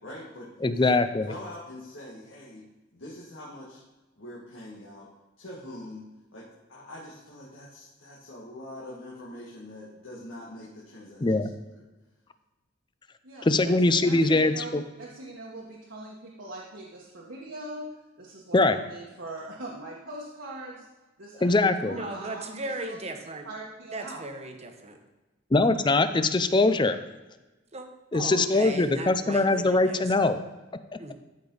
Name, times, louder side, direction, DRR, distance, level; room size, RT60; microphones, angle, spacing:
voice 1, 0.0-0.9 1.2-2.7 2.9-3.8 4.2-5.1 5.4-6.1 6.3-11.8, left 1 dB, 85° left, -6 dB, 1.9 m, -44 dB
voice 2, 0.6-1.3 11.2-11.5 13.4-14.8 18.5-18.8 21.4-22.0 25.5-27.0 28.1-30.4 30.9-31.0, left 2 dB, 25° left, 10 dB, 0.5 m, -22 dB
voice 3, 13.2-13.7 14.0-14.7 15.0-17.9 18.2-20.9 21.2-22.6 22.9-24.2, right 2 dB, 70° right, -4 dB, 1.4 m, -41 dB
voice 4, 21.8-23.5 23.9-25.0 27.7-27.9 28.1-30.1 31.0-31.1, right 2 dB, 35° right, 5 dB, 1.1 m, -37 dB
13.5 x 5.2 x 4.0 m, 1.1 s
head